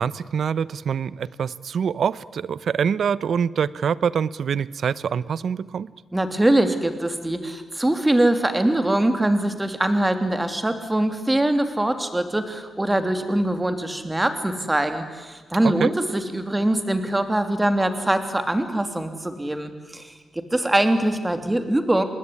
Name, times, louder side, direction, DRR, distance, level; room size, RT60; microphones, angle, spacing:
voice 1, 0.0-5.9 15.6-15.9, right 7 dB, 65° right, 19 dB, 0.8 m, -25 dB
voice 2, 6.1-22.0, right 1 dB, 15° right, 8 dB, 3.0 m, -23 dB
26.5 x 20.5 x 10.0 m, 1.3 s
cardioid pair, 95°, 0 cm